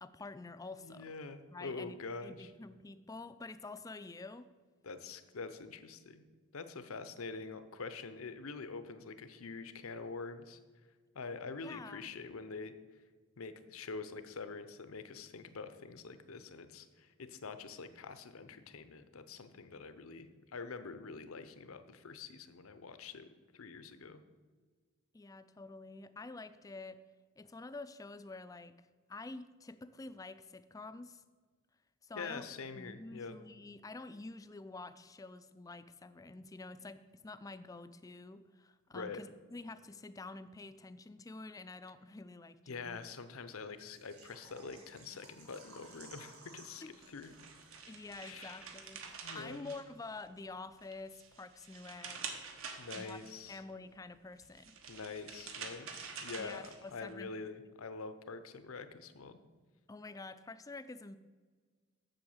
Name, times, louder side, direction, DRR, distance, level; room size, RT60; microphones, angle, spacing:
voice 1, 0.0-1.1 1.5-2.0 2.2-4.5 11.6-12.1 25.1-27.0 27.4-28.8 29.1-31.2 32.0-32.5 32.7-43.0 46.8-46.9 47.9-49.0 49.3-52.4 52.9-53.2 53.5-54.7 56.4-57.3 59.9-61.2, left 3 dB, 15° left, 13 dB, 0.3 m, -48 dB
voice 2, 0.8-2.5 4.8-6.2 6.5-10.6 11.1-12.7 13.4-23.3 23.5-24.2 32.1-33.4 38.9-39.2 42.7-47.4 48.2-48.8 49.2-49.7 52.8-53.6 54.9-59.4, left 4 dB, 75° left, 11 dB, 0.7 m, -45 dB
Water / Liquid, 43.9-49.5 49.8-49.9 50.3-50.4, right 3 dB, 90° right, 2.1 m, -58 dB
sound 1, 47.0-50.4 50.8-53.5 54.4-57.1, right 5 dB, 70° right, 1.2 m, -47 dB
7.8 x 6.9 x 7.2 m, 1.5 s
head